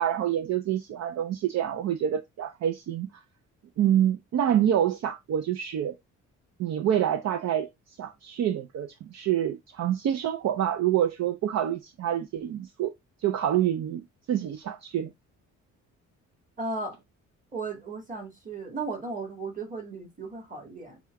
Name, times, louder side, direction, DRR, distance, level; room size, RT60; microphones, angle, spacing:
voice 1, 0.0-3.1 3.8-6.0 6.6-7.7 8.0-12.9 13.2-15.1, right 10 dB, 60° right, 0.6 m, -27 dB
voice 2, 16.6-17.0 17.5-21.0, right 3 dB, 25° right, 1.8 m, -35 dB
6.2 x 2.3 x 3.5 m
cardioid pair, 90°, 30 cm